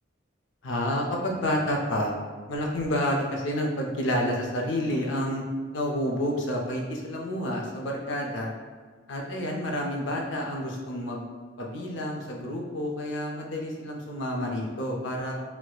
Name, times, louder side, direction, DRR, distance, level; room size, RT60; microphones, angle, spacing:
voice 1, 0.6-2.1 2.5-5.4 5.7-8.5 9.1-11.2 11.6-15.3, equal, 70° left, 0 dB, 0.5 m, -29 dB
4.3 x 2.1 x 2.3 m, 1.5 s
head